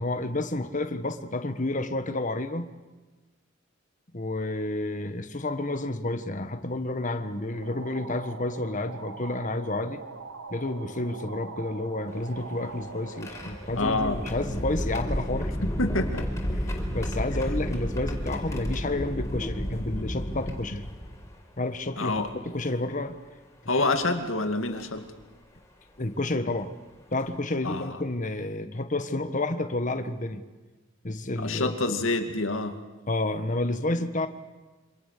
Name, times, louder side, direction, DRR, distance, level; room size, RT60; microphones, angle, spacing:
voice 1, 0.0-2.7 4.1-10.0 10.5-15.5 16.5-20.9 21.6-22.1 22.4-23.2 23.8-23.9 26.0-26.7 27.1-30.4 31.0-31.7 33.1-34.3, left 2 dB, 40° left, 8 dB, 1.5 m, -30 dB
sound 1, 7.3-14.7, right 3 dB, 90° right, 2.0 m, -43 dB
sound 2, 12.1-21.4 22.3-22.4 23.8-24.0 24.8-25.0 26.6-26.7 27.1-27.4, equal, 15° left, 4.5 m, -32 dB
voice 2, 13.8-14.2 15.8-16.3 22.0-22.3 23.7-25.1 27.6-28.0 31.4-32.8, left 2 dB, 80° left, 7 dB, 2.5 m, -27 dB
27.5 x 26.0 x 6.8 m, 1.2 s
head